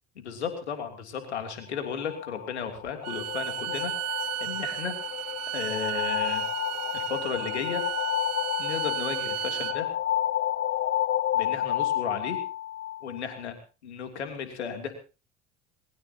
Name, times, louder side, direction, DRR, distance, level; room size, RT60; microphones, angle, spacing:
voice 1, 0.2-3.9 4.4-4.9 5.5-6.4 6.9-7.8 8.6-9.9 11.3-12.4 13.0-13.5 13.8-14.9, left 6 dB, 90° left, 6 dB, 3.1 m, -34 dB
sound 1, 1.7-13.4, left 12 dB, 35° left, 0.8 m, -31 dB
Bowed string instrument, 3.0-9.8, right 14 dB, 50° right, 1.2 m, -34 dB
21.5 x 21.0 x 2.9 m, 0.33 s
hypercardioid pair, 65°, 32 cm